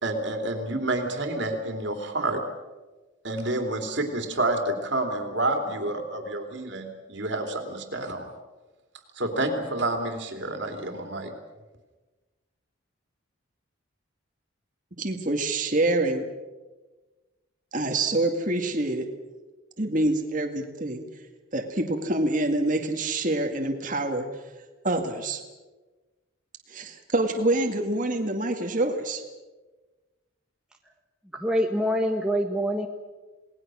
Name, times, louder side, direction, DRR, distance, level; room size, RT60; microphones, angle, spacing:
voice 1, 0.0-2.4 3.2-8.3 9.2-11.3, right 2 dB, 55° right, 4 dB, 3.1 m, -29 dB
voice 2, 15.0-16.2 17.7-19.1 19.8-21.0 21.5-24.3 24.8-25.4 26.7-29.2, right 2 dB, 40° right, 3 dB, 2.1 m, -26 dB
voice 3, 31.3-32.9, equal, 5° right, 1 dB, 1.5 m, -25 dB
28.0 x 19.5 x 6.3 m, 1.2 s
head